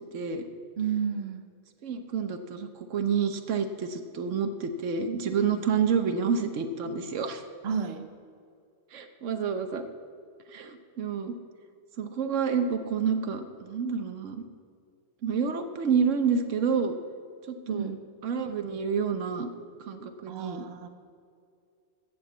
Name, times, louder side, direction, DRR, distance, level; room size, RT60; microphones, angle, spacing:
voice 1, 0.1-0.4 1.8-7.4 8.9-9.8 10.5-11.3 12.0-14.4 15.2-16.9 17.5-17.9 18.2-19.5 19.8-20.6, right 6 dB, 90° right, 7 dB, 1.2 m, -29 dB
voice 2, 0.8-1.4 5.3-5.6 7.6-8.1 17.6-18.0 20.3-20.9, right 7 dB, 60° right, 7 dB, 1.0 m, -32 dB
15.0 x 5.2 x 8.0 m, 2.3 s
omnidirectional pair, 1.2 m